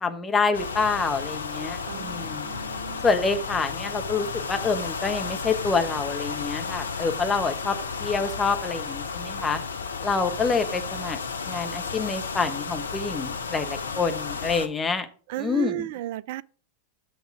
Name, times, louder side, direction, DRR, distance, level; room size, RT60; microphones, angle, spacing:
voice 1, 0.0-2.5 3.0-9.6 10.0-11.2 11.5-15.1 15.4-15.9, left 4 dB, 15° left, 1.1 m, -27 dB
sound 1, 0.5-14.7, left 5 dB, 70° left, 0.7 m, -33 dB
voice 2, 1.8-3.1 15.3-16.4, right 14 dB, 50° right, 0.3 m, -34 dB
6.7 x 6.5 x 4.9 m
figure-of-eight pair, 90°, 0 cm